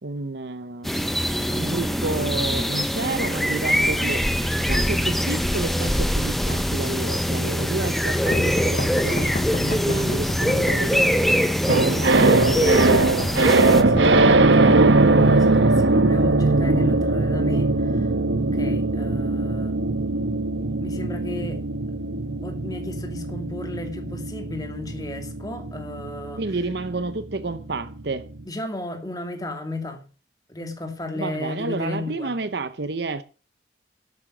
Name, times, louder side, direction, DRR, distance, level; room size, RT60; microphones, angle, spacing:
voice 1, 0.0-0.9 1.3-4.2 4.7-11.1 11.6-12.8 26.4-28.3 31.1-33.2, right 3 dB, 60° right, 0.8 m, -30 dB
sound 1, 0.8-13.8, equal, ahead, 0.9 m, -23 dB
sound 2, 8.3-11.3 12.2-15.5, left 2 dB, 40° left, 0.9 m, -31 dB
sound 3, 11.7-28.0 28.3-28.4, right 2 dB, 75° right, 1.1 m, -20 dB
voice 2, 13.6-14.8 15.1-18.1 18.4-19.8 20.8-21.6 22.4-26.4 28.5-30.0 30.5-32.3, left 1 dB, 20° left, 2.4 m, -34 dB
12.0 x 8.8 x 6.3 m
head